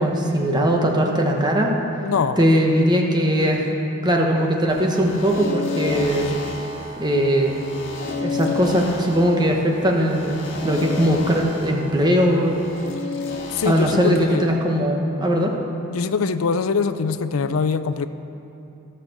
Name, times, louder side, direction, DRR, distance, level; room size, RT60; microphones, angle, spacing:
voice 1, 0.0-1.7 2.4-3.7 4.0-6.3 7.0-7.6 8.2-12.6 13.6-15.5, equal, 20° right, 1 dB, 1.2 m, -20 dB
voice 2, 2.0-2.4 13.5-14.5 15.9-18.1, left 5 dB, 90° left, 11 dB, 0.5 m, -23 dB
sound 1, 4.7-14.5, left 3 dB, 60° left, 1.7 m, -32 dB
16.0 x 6.7 x 6.5 m, 2.8 s
head